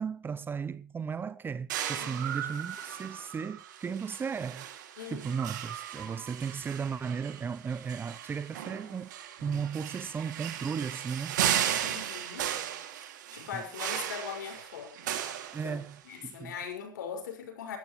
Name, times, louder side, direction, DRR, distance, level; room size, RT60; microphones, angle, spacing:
voice 1, 0.0-4.7 5.1-9.1 9.4-11.4 13.5-13.6 15.5-16.5, right 6 dB, 20° right, 0.7 m, -35 dB
sound 1, 1.7-16.2, right 10 dB, 70° right, 2.7 m, -36 dB
voice 2, 5.0-5.4 11.8-12.5 13.3-15.1 15.6-15.8 16.0-17.8, left 7 dB, 75° left, 5.9 m, -40 dB
20.5 x 14.0 x 3.2 m
hypercardioid pair, 90°, 10 cm